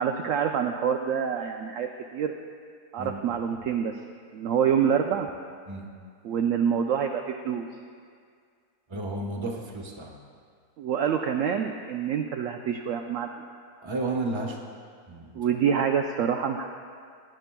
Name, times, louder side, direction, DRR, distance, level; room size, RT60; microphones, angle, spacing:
voice 1, 0.0-2.3 2.9-3.9 4.3-5.3 6.2-7.7 10.8-13.4 15.3-16.7, right 7 dB, 70° right, 4 dB, 0.8 m, -26 dB
voice 2, 8.9-10.1 13.8-14.6 15.1-15.5, right 2 dB, 20° right, 0 dB, 1.0 m, -32 dB
18.0 x 10.5 x 2.2 m, 2.1 s
omnidirectional pair, 1.7 m